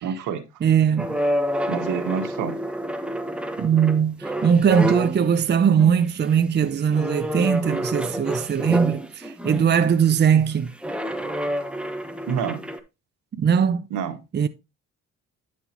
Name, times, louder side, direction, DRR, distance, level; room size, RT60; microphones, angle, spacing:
voice 1, 0.0-0.5 1.7-2.5 12.3-12.6 13.9-14.2, right 7 dB, 85° right, 1.4 m, -27 dB
voice 2, 0.6-1.1 3.6-10.7 13.4-13.8 14.3-14.5, right 7 dB, 35° right, 0.7 m, -20 dB
sound 1, 1.0-5.3 5.8-6.2 6.9-9.7 10.8-12.8, equal, 5° right, 1.1 m, -28 dB
9.8 x 6.1 x 3.0 m
cardioid pair, 90°, 30 cm